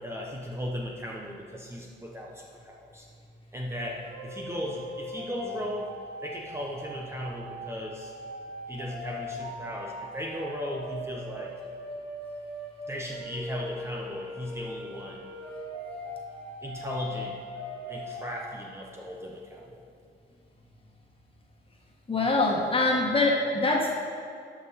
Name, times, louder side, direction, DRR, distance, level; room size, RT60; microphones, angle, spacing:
voice 1, 0.0-3.1 3.5-5.9 6.2-8.1 8.7-11.5 12.9-15.2 16.6-17.3 17.9-19.8, equal, 15° right, -2 dB, 1.0 m, -36 dB
sound 1, 4.0-18.4, equal, 70° right, 2.3 m, -40 dB
voice 2, 22.1-24.0, left 2 dB, 25° left, -1 dB, 1.7 m, -24 dB
12.5 x 5.7 x 4.2 m, 2.4 s
cardioid pair, 90°, 20 cm